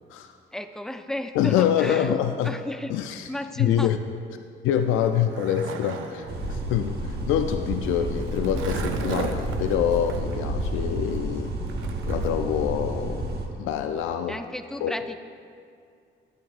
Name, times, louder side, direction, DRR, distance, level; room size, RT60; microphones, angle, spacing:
voice 1, 0.5-2.2 2.4-3.0 3.3-3.9 14.3-15.2, left 1 dB, 5° left, 8 dB, 0.4 m, -33 dB
voice 2, 1.4-2.6 2.9-3.3 3.6-4.0 4.6-11.5 12.1-14.4 14.8-14.9, left 9 dB, 85° left, 7 dB, 0.4 m, -25 dB
Skateboard, 4.8-12.3, right 6 dB, 80° right, 0.6 m, -37 dB
sound 1, 6.3-13.5, right 1 dB, 55° right, 1.2 m, -30 dB
10.5 x 9.3 x 2.4 m, 2.2 s
cardioid pair, 90°, 20 cm